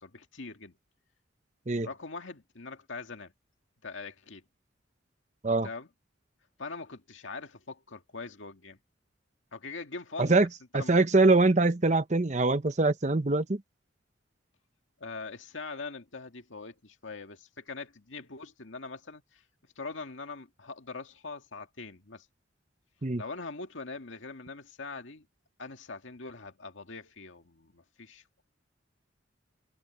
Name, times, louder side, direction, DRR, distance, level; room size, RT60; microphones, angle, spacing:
voice 1, 0.0-0.7 1.8-3.3 3.8-4.4 5.6-5.9 6.6-8.8 9.5-10.5 10.7-11.0 15.0-19.4 19.8-22.3 23.2-25.3 25.6-28.4, left 3 dB, 85° left, 2.0 m, -42 dB
voice 2, 10.7-13.6 23.0-23.2, right 3 dB, 35° right, 0.9 m, -23 dB
head